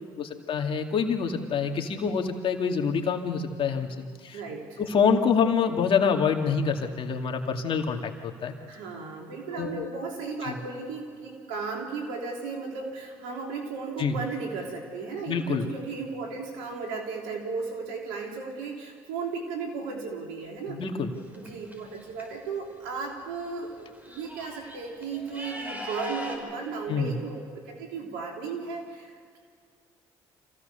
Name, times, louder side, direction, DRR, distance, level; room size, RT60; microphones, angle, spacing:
voice 1, 0.2-4.4 4.8-8.5 9.5-9.9 10.4-10.6 14.0-14.1 15.3-15.7 20.7-21.1 26.9-27.1, left 6 dB, 55° left, 3 dB, 2.3 m, -26 dB
voice 2, 4.3-4.8 8.7-20.8 21.3-29.4, right 4 dB, 90° right, 1 dB, 3.3 m, -35 dB
sound 1, 21.1-22.2 23.4-23.5 23.8-26.4, equal, 15° right, 5.3 m, -39 dB
26.0 x 16.0 x 6.9 m, 2.2 s
supercardioid pair, 60°, 11 cm